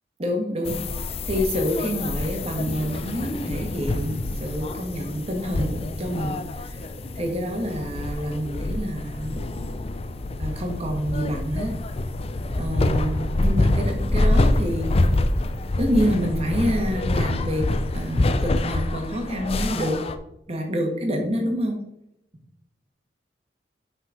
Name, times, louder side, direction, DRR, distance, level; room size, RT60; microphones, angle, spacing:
voice 1, 0.2-0.8 1.2-6.8 7.1-9.4 10.4-11.7 12.6-15.1 15.8-17.6 17.9-19.9 20.5-21.8, equal, 35° right, 2 dB, 1.6 m, -27 dB
sound 1, 0.6-20.2, left 2 dB, 35° left, 0.5 m, -26 dB
6.0 x 5.5 x 5.0 m, 0.83 s
head